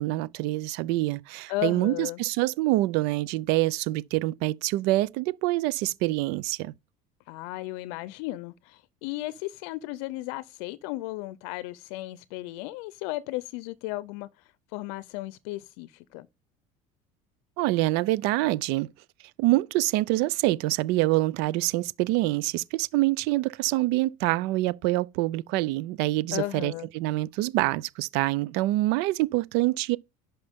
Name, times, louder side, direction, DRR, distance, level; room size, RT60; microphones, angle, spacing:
voice 1, 0.0-6.7 17.6-18.9 19.4-30.0, right 18 dB, 75° right, 0.5 m, -26 dB
voice 2, 1.5-2.2 7.3-14.3 14.7-16.3 26.3-26.9, left 18 dB, 90° left, 0.6 m, -35 dB
10.5 x 5.7 x 3.6 m
cardioid pair, 150°, 17 cm